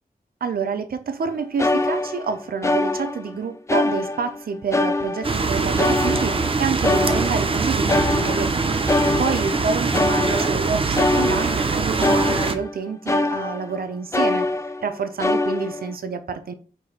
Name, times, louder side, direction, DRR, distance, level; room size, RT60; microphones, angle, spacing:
voice 1, 0.4-8.7 9.2-14.5 14.8-16.5, right 5 dB, 75° right, 0.7 m, -28 dB
sound 1, 1.2-1.3 1.6-3.4 3.7-4.4 4.7-7.6 7.9-13.8 14.1-14.9 15.2-15.9, left 2 dB, 20° left, 0.4 m, -24 dB
sound 2, 5.2-12.5, right 4 dB, 35° right, 0.6 m, -23 dB
4.9 x 4.4 x 4.3 m
wide cardioid pair, 130°, 16 cm